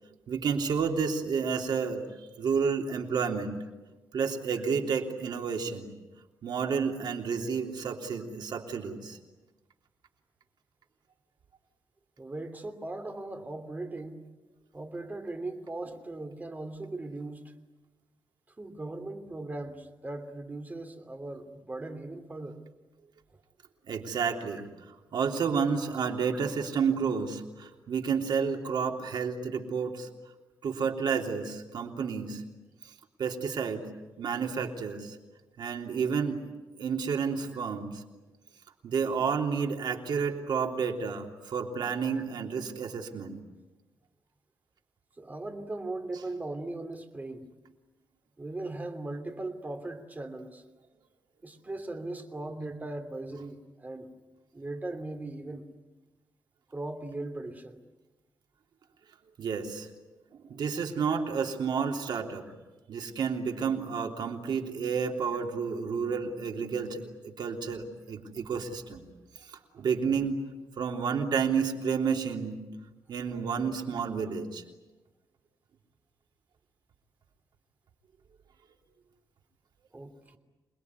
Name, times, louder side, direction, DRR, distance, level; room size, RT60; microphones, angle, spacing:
voice 1, 0.3-2.0 2.4-3.5 4.1-5.9 6.4-9.2 23.9-24.6 25.1-30.1 30.6-32.4 33.2-33.8 34.2-35.1 35.6-36.4 36.8-38.0 38.8-43.4 59.4-59.9 60.4-62.4 62.9-69.0 69.8-70.4 70.8-72.6 73.1-74.6, right 6 dB, 75° right, 2 dB, 3.4 m, -30 dB
voice 2, 12.2-14.2 14.7-17.4 18.6-22.6 40.2-40.3 45.2-47.5 48.4-50.6 51.4-54.1 54.5-55.7 56.7-57.8 79.9-80.4, right 2 dB, 20° right, 7 dB, 2.9 m, -38 dB
27.5 x 21.0 x 9.7 m, 1.2 s
wide cardioid pair, 125°, 8 cm